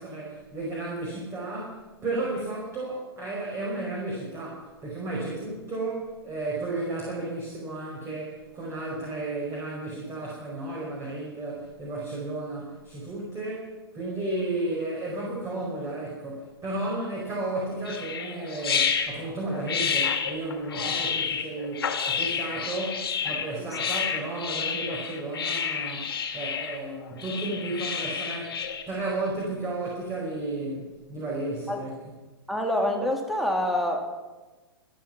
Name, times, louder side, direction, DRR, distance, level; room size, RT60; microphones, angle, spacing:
voice 1, 0.0-28.6 28.9-31.9, right 2 dB, 20° right, -4 dB, 5.3 m, -33 dB
sound 1, 17.8-28.8, left 7 dB, 65° left, 2.9 m, -29 dB
voice 2, 32.5-34.1, left 1 dB, ahead, 3 dB, 2.6 m, -26 dB
26.0 x 9.0 x 6.1 m, 1.2 s
figure-of-eight pair, 110°, 13 cm